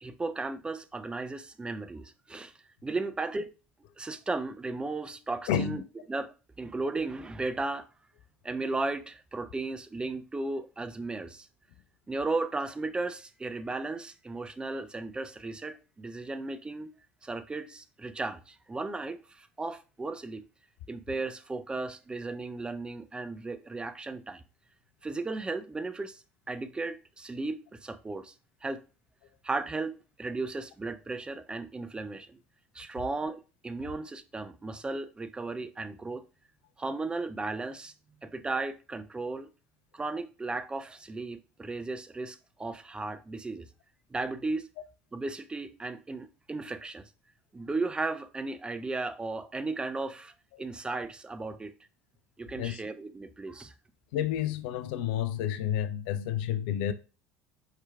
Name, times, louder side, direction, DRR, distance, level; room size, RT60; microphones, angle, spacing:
voice 1, 0.0-2.5 2.8-3.5 4.0-5.8 6.1-7.9 8.4-11.5 12.1-16.9 17.2-20.4 20.9-24.4 25.0-28.3 28.6-28.8 29.4-32.4 32.7-36.2 36.8-37.9 38.2-39.5 39.9-43.7 44.1-44.7 45.1-47.1 47.5-50.3 50.6-51.7 52.4-53.7, right 3 dB, 15° right, 0.5 m, -35 dB
voice 2, 5.5-5.8 50.5-50.6 52.6-52.8 54.1-56.9, left 10 dB, 60° left, 0.4 m, -30 dB
4.8 x 4.5 x 2.3 m
figure-of-eight pair, 65°, 6 cm